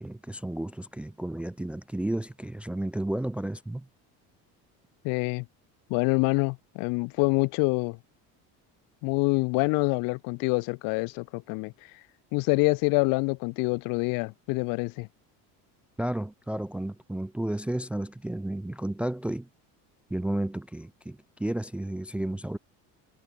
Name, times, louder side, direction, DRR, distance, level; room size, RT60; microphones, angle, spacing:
voice 1, 0.0-3.9 16.0-19.5 20.1-22.6, right 1 dB, 5° right, 0.4 m, -32 dB
voice 2, 5.0-5.4 5.9-8.0 9.0-11.7 12.3-15.1, left 30 dB, 80° left, 1.4 m, -26 dB
cardioid pair, 170°, 34 cm